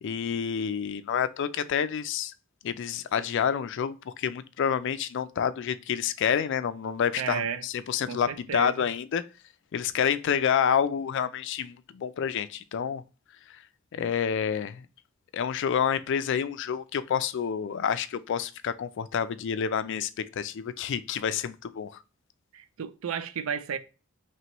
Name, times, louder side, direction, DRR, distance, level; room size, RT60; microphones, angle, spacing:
voice 1, 0.0-2.3 2.6-9.2 9.7-13.0 13.9-14.9 15.3-20.1 20.4-21.9, left 8 dB, 60° left, 0.3 m, -28 dB
voice 2, 7.2-7.6 8.1-8.9 22.5-23.8, right 7 dB, 75° right, 0.4 m, -33 dB
3.0 x 3.0 x 4.3 m
head